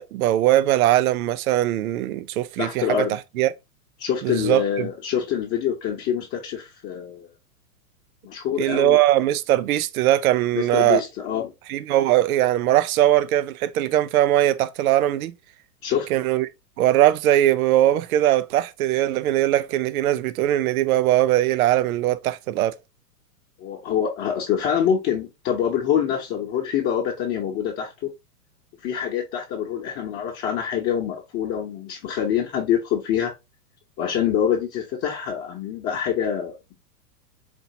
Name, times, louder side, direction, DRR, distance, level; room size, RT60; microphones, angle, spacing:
voice 1, 0.0-3.5 4.2-4.9 8.6-11.0 11.7-15.3 16.1-16.5 16.8-22.8, right 13 dB, 65° right, 0.5 m, -20 dB
voice 2, 2.6-3.2 4.0-7.3 8.2-9.0 10.5-11.5 15.8-16.1 23.6-28.1 28.8-33.3 34.0-36.7, left 8 dB, 30° left, 1.0 m, -25 dB
4.5 x 2.8 x 2.7 m
hypercardioid pair, 120°, 47 cm